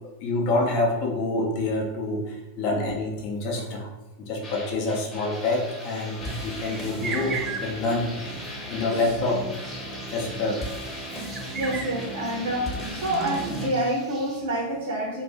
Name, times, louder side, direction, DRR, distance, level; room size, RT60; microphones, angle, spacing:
voice 1, 0.2-3.9 4.2-9.4 10.1-10.6, left 2 dB, 45° left, -1 dB, 0.6 m, -27 dB
sound 1, 4.4-13.7, equal, 20° left, 1.0 m, -36 dB
sound 2, 5.3-14.4, right 5 dB, 20° right, 0.7 m, -40 dB
voice 2, 11.5-15.2, right 1 dB, 60° right, -2 dB, 0.6 m, -28 dB
2.6 x 2.3 x 3.7 m, 1.0 s
figure-of-eight pair, 90°, 0 cm